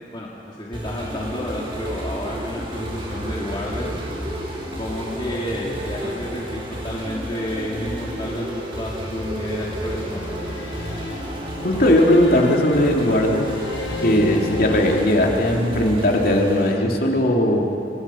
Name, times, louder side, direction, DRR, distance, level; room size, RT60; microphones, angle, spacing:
voice 1, 0.1-4.0 4.8-10.4, left 1 dB, 25° left, -4 dB, 2.4 m, -31 dB
sound 1, 0.7-16.7, equal, 30° right, 5.5 m, -31 dB
sound 2, 9.9-15.0, left 3 dB, 75° left, 1.5 m, -33 dB
voice 2, 11.6-13.5 14.0-17.6, left 1 dB, 55° left, 0 dB, 3.0 m, -18 dB
29.0 x 27.5 x 5.9 m, 2.8 s
head